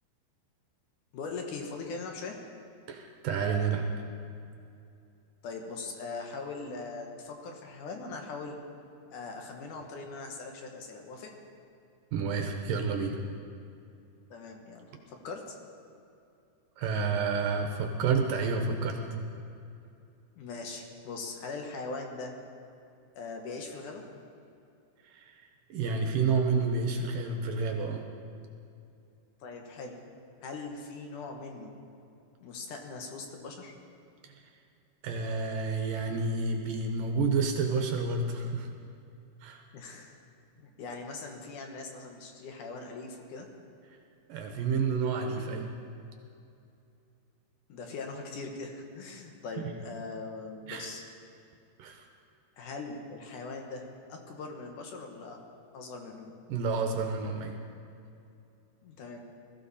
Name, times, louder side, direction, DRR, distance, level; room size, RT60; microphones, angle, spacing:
voice 1, 1.1-2.4 5.4-8.6 9.1-11.3 14.3-15.6 20.4-22.3 23.2-24.0 29.4-30.0 30.4-31.7 32.4-33.7 39.7-40.1 40.6-43.5 47.7-51.0 52.6-55.4 55.7-56.3 58.8-59.2, left 3 dB, 60° left, 2 dB, 2.5 m, -41 dB
voice 2, 2.9-3.9 12.1-13.2 16.8-19.2 25.0-25.4 25.7-28.0 34.2-34.3 35.0-38.7 39.4-39.6 44.3-45.7 49.6-49.7 50.7-50.9 51.8-52.0 56.5-57.6, right 4 dB, 70° right, 4 dB, 2.4 m, -30 dB
20.5 x 14.5 x 4.2 m, 2.6 s
omnidirectional pair, 4.5 m